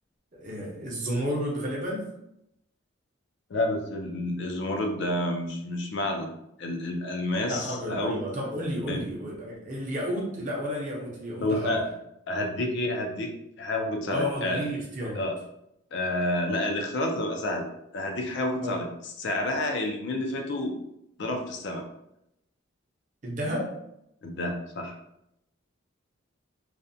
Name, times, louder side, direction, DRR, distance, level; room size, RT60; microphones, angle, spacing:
voice 1, 0.3-2.1 7.4-11.8 14.1-15.3 18.6-18.8 23.2-23.7, equal, 40° right, -2 dB, 0.6 m, -32 dB
voice 2, 3.5-6.3 6.6-8.2 8.9-9.0 11.4-11.8 12.3-14.6 15.2-15.3 15.9-17.7 17.9-18.9 19.2-20.8 21.2-21.9 24.2-24.9, left 1 dB, 55° left, 3 dB, 0.4 m, -29 dB
2.4 x 2.1 x 2.6 m, 0.81 s
head